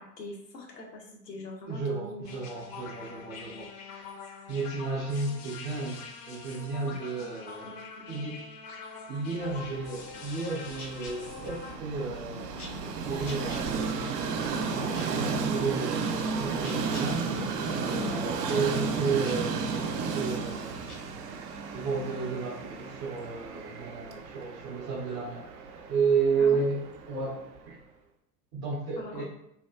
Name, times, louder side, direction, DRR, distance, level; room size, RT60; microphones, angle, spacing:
voice 1, 0.0-2.2 6.8-7.0 7.6-8.2 17.9-18.2 26.4-26.6 29.0-29.2, left 2 dB, 85° left, 0 dB, 0.8 m, -43 dB
voice 2, 1.7-3.9 4.5-7.7 8.1-8.4 9.1-12.5 13.0-13.8 14.7-17.2 17.7-20.8 21.7-25.5 25.9-26.8 27.1-27.8 28.5-29.2, right 4 dB, 25° right, -3 dB, 0.3 m, -32 dB
sound 1, 2.2-11.7, left 5 dB, 40° left, 0.5 m, -44 dB
Train, 9.5-27.6, right 4 dB, 70° right, 0.5 m, -33 dB
sound 2, 10.0-20.9, left 2 dB, 65° left, 1.0 m, -52 dB
2.8 x 2.3 x 2.2 m, 0.79 s
figure-of-eight pair, 85°, 48 cm